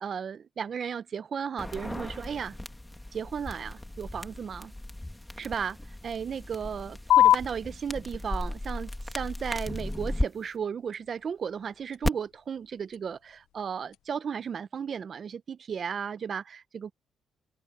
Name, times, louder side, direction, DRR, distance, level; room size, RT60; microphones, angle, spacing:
voice 1, 0.0-2.5 3.1-4.7 5.4-5.8 6.0-16.9, right 7 dB, 50° right, 0.7 m, -35 dB
sound 1, 1.6-10.3 12.0-12.1, left 1 dB, 10° left, 2.0 m, -36 dB
sound 2, 7.1-14.1, left 12 dB, 85° left, 0.5 m, -30 dB
cardioid pair, 90°, 0 cm